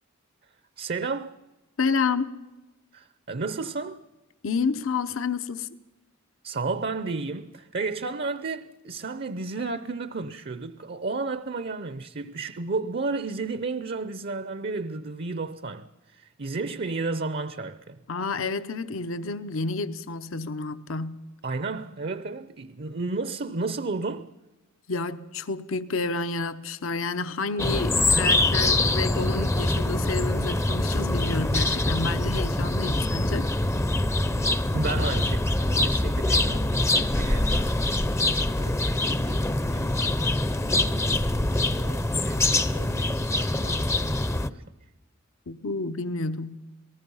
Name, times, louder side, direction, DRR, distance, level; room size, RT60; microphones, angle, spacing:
voice 1, 0.8-1.4 2.9-4.0 6.4-18.0 21.4-24.3 34.7-37.8 38.3-40.2 40.9-44.6, right 3 dB, 50° right, 0.7 m, -33 dB
voice 2, 1.8-2.4 4.4-5.7 18.1-21.2 24.9-33.6 45.5-46.6, left 4 dB, 70° left, 0.8 m, -30 dB
sound 1, 27.6-44.5, left 2 dB, 15° left, 0.6 m, -24 dB
27.0 x 19.0 x 5.6 m
head